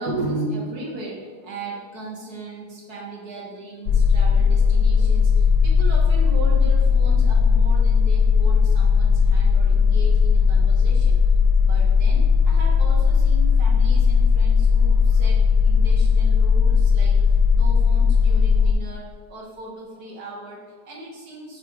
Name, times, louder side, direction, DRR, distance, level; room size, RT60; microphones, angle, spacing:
voice 1, 0.0-11.2 11.6-17.1 17.5-21.6, right 2 dB, 70° right, -3 dB, 1.7 m, -36 dB
sound 1, 3.9-18.7, left 5 dB, 70° left, 0.9 m, -17 dB
4.9 x 4.4 x 4.7 m, 1.4 s
omnidirectional pair, 1.7 m